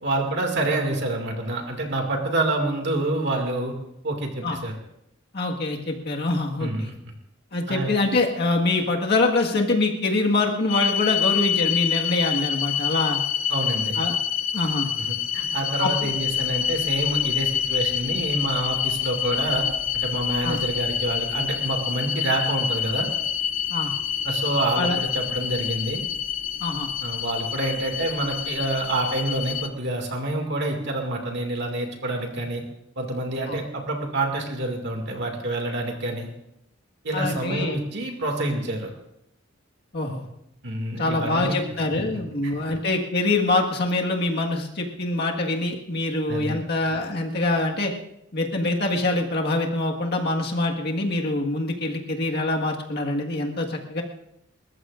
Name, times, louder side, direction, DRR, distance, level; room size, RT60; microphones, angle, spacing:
voice 1, 0.0-3.7 4.0-4.8 6.6-6.9 7.7-8.0 13.5-14.0 15.0-19.7 19.9-23.1 24.2-26.0 27.0-32.6 33.0-36.3 37.0-38.9 40.6-41.6 42.4-42.5 46.3-46.6, right 2 dB, 60° right, 2 dB, 2.3 m, -27 dB
voice 2, 5.3-6.9 7.5-13.2 14.0-14.2 14.5-14.9 15.8-16.1 20.4-20.6 23.7-23.9 24.8-25.0 26.6-26.9 33.5-33.6 37.1-37.8 39.9-40.3 41.0-47.9 48.3-54.0, left 2 dB, 55° left, 0 dB, 1.7 m, -24 dB
sound 1, 10.7-29.7, left 8 dB, 75° left, 0.7 m, -27 dB
30.0 x 14.5 x 2.6 m, 0.80 s
head